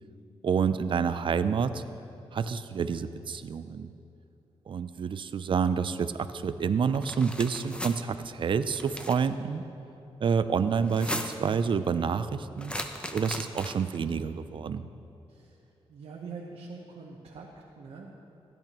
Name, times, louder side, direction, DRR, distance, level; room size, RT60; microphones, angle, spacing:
voice 1, 0.4-1.8 2.3-3.9 4.7-9.7 10.2-12.7 13.1-14.9, right 6 dB, 55° right, 12 dB, 0.5 m, -28 dB
sound 1, 6.9-8.0 8.7-9.3 10.8-11.5 12.6-14.0, left 1 dB, 10° left, 0.7 m, -37 dB
voice 2, 15.9-17.5 17.8-18.1, right 4 dB, 75° right, -2 dB, 1.0 m, -43 dB
16.5 x 10.5 x 3.0 m, 2.8 s
cardioid pair, 95°, 10 cm